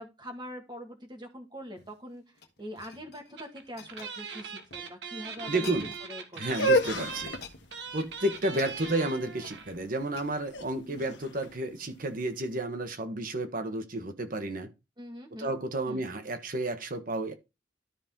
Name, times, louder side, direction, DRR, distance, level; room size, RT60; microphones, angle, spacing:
voice 1, 0.0-2.2 2.6-6.6 10.9-11.2 15.0-15.5 15.9-16.1, equal, 25° right, 1.9 m, -43 dB
sound 1, 1.7-4.9 5.4-6.1 6.3-6.8 7.1-11.4 12.0-12.1, left 5 dB, 60° left, 1.3 m, -51 dB
sound 2, 3.4-3.6 3.9-9.8 10.0-10.1 10.3-10.5, right 6 dB, 70° right, 1.5 m, -40 dB
voice 2, 5.4-5.9 6.4-7.4 7.9-14.7 15.4-17.3, right 1 dB, 50° right, 1.2 m, -31 dB
sound 3, 6.4-12.4, equal, 85° left, 1.1 m, -32 dB
13.0 x 4.3 x 3.7 m
head